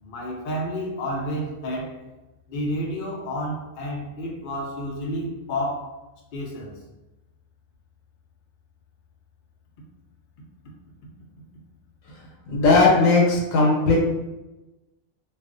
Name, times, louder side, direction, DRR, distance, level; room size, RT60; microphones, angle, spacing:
voice 1, 0.0-2.0 2.5-5.9 6.3-6.8, equal, 55° left, -2 dB, 0.6 m, -30 dB
voice 2, 12.5-14.0, left 3 dB, 80° left, -2 dB, 1.1 m, -17 dB
2.4 x 2.4 x 2.4 m, 1.0 s
omnidirectional pair, 1.4 m